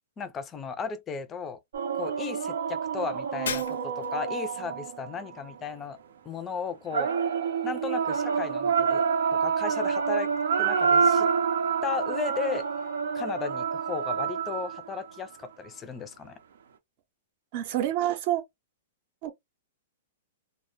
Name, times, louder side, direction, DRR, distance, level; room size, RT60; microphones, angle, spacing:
voice 1, 0.2-1.6 1.9-6.0 6.3-7.1 7.6-9.0 9.3-10.3 10.6-11.3 11.8-12.7 13.1-16.4, left 5 dB, 20° left, 0.4 m, -35 dB
sound 1, 1.7-5.5 6.9-15.0, right 6 dB, 85° right, 0.6 m, -27 dB
Shatter, 3.5-4.3, left 7 dB, 90° left, 0.5 m, -35 dB
voice 2, 17.5-18.4 19.2-19.3, right 13 dB, 45° right, 0.6 m, -27 dB
2.1 x 2.1 x 2.9 m
hypercardioid pair, 155°, 0 cm